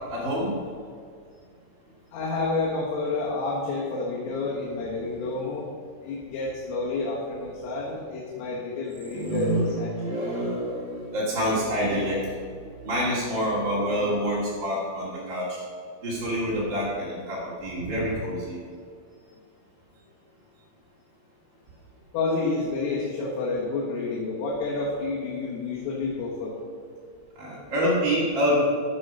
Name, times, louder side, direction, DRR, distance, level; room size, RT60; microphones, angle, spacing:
voice 1, 0.1-0.6 9.0-15.6 16.0-18.6 27.3-28.6, equal, 40° right, -7 dB, 1.7 m, -27 dB
voice 2, 2.1-5.7 6.0-10.2 22.1-26.6, left 3 dB, 85° left, -5 dB, 4.2 m, -29 dB
14.0 x 7.1 x 5.4 m, 2.1 s
omnidirectional pair, 5.7 m